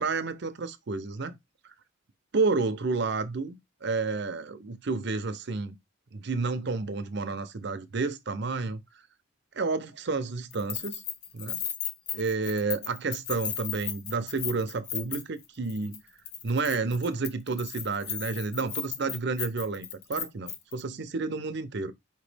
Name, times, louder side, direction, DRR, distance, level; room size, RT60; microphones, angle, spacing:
voice 1, 0.0-1.3 2.3-5.8 6.1-8.8 9.5-11.0 11.3-11.6 12.1-16.0 16.4-21.9, right 4 dB, 50° right, 0.6 m, -30 dB
Keys jangling, 10.5-15.4 15.7-16.0 16.3-20.8, left 8 dB, 80° left, 0.7 m, -35 dB
4.6 x 2.9 x 3.3 m
head